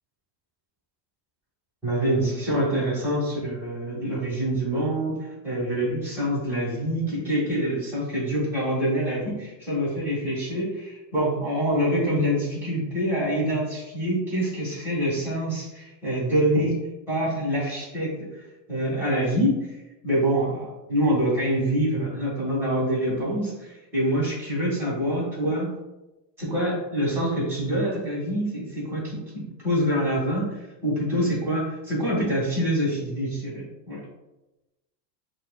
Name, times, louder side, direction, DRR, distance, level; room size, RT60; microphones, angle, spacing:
voice 1, 1.8-16.8 17.1-18.3 18.7-19.7 20.0-25.7 26.4-34.0, equal, 5° right, -9 dB, 1.5 m, -26 dB
5.9 x 2.6 x 2.3 m, 1.0 s
supercardioid pair, 175°, 50 cm